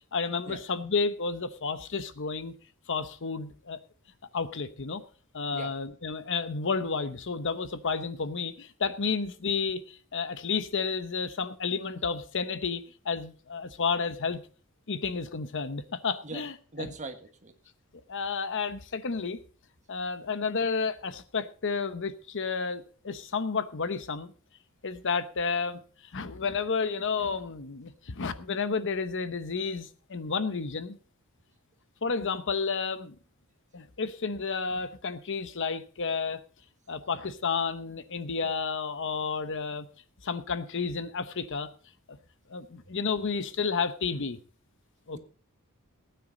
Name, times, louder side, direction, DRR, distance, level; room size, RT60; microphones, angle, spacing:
voice 1, 0.1-2.5 2.9-3.8 4.3-5.0 5.3-14.4 14.9-16.5 16.8-16.9 18.1-19.4 19.9-24.3 24.8-25.8 26.1-31.0 32.0-33.1 33.7-36.4 36.9-39.9 40.2-41.7 42.1-42.2 42.5-44.4 45.1-45.2, left 5 dB, 60° left, 12 dB, 0.9 m, -31 dB
voice 2, 16.7-17.5 45.1-45.2, right 3 dB, 35° right, 7 dB, 1.5 m, -40 dB
18.5 x 9.4 x 3.9 m, 0.39 s
head